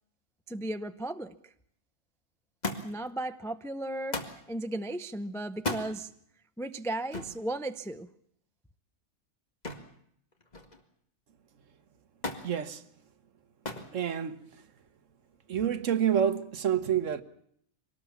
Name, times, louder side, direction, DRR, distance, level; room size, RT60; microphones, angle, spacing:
voice 1, 0.5-1.5 2.8-6.1 6.6-8.1, right 1 dB, 5° left, 0.3 m, -35 dB
Thump thud, 2.6-3.1 4.1-4.4 5.5-5.9 7.1-7.4 9.6-10.0 10.3-10.9 12.2-12.5 13.6-13.9 14.9-15.3 16.3-16.4, left 2 dB, 30° left, 2.0 m, -36 dB
voice 2, 12.4-12.8 13.9-14.4 15.5-17.2, right 9 dB, 65° right, 1.4 m, -28 dB
23.5 x 18.5 x 7.1 m
omnidirectional pair, 1.5 m